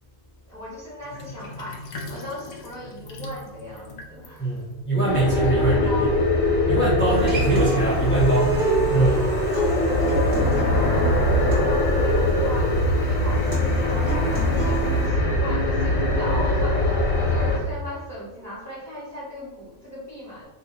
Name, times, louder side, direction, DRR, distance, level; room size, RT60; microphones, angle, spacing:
voice 1, 0.5-4.6 5.0-6.3 7.0-7.2 8.9-20.4, left 1 dB, 15° right, -8 dB, 1.4 m, -37 dB
Sink (filling or washing), 1.0-5.8, left 2 dB, 90° left, 0.4 m, -41 dB
voice 2, 4.4-6.1 6.7-9.1, right 2 dB, 15° left, -8 dB, 0.4 m, -23 dB
sound 1, 5.1-17.6, left 1 dB, 70° left, 1.2 m, -22 dB
Human voice / Acoustic guitar, 7.1-15.1, right 2 dB, 40° right, 1.3 m, -28 dB
2.8 x 2.6 x 3.9 m, 1.0 s
omnidirectional pair, 1.4 m